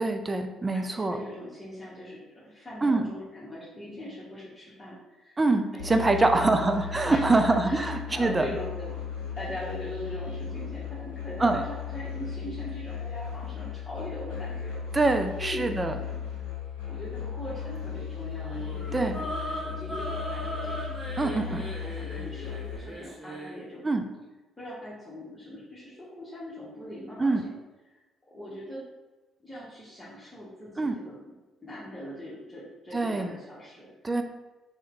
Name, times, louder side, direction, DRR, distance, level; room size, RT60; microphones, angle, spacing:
voice 1, 0.0-1.2 2.8-3.0 5.4-8.5 11.4-11.6 14.9-16.0 18.9-19.2 21.2-21.6 23.8-24.0 27.2-27.4 30.8-31.0 32.9-33.4 34.0-34.2, right 2 dB, 25° right, 6 dB, 0.4 m, -24 dB
voice 2, 0.7-5.4 5.7-14.8 15.4-16.3 16.8-23.8 24.6-27.5 27.9-28.0 28.3-28.8 29.4-31.2 31.6-33.9, left 1 dB, 20° left, -9 dB, 1.0 m, -41 dB
Musical instrument, 5.8-22.8, left 8 dB, 90° left, 0.7 m, -36 dB
sound 1, 18.4-23.6, right 1 dB, 5° right, 1.2 m, -37 dB
3.1 x 2.1 x 3.6 m, 1.1 s
hypercardioid pair, 45°, 0 cm